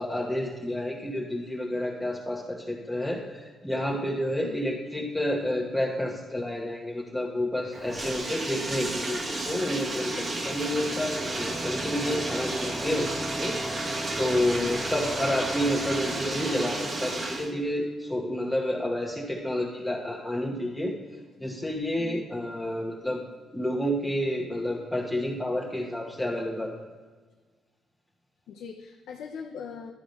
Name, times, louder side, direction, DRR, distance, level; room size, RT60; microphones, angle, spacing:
voice 1, 0.0-13.1 13.4-20.9 21.4-23.2 23.5-26.7, left 1 dB, 5° left, -3 dB, 1.1 m, -30 dB
Bathtub (filling or washing), 7.7-17.5, right 2 dB, 35° right, 1.3 m, -32 dB
sound 1, 10.1-17.8, equal, 15° right, 0.6 m, -39 dB
voice 2, 28.5-29.9, left 6 dB, 80° left, 1 dB, 0.7 m, -40 dB
11.5 x 4.9 x 5.3 m, 1.4 s
cardioid pair, 100°, 0 cm